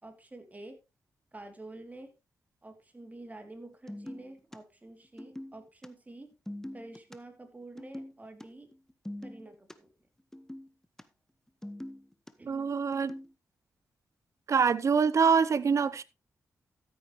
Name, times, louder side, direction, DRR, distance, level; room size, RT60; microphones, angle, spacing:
voice 1, 0.0-0.8 1.3-2.1 2.6-6.3 6.7-8.7 9.2-9.9 12.4-12.7, right 2 dB, 25° right, 2.8 m, -48 dB
sound 1, 3.9-4.6 5.0-5.9 6.3-7.2 7.8-8.1 8.4-8.5 8.7-9.7 10.3-11.0 11.5-12.3 12.9-13.3, left 1 dB, 5° left, 1.0 m, -43 dB
voice 2, 12.5-13.1 14.5-16.0, right 6 dB, 55° right, 0.8 m, -25 dB
13.5 x 8.6 x 3.1 m
cardioid pair, 60°, 6 cm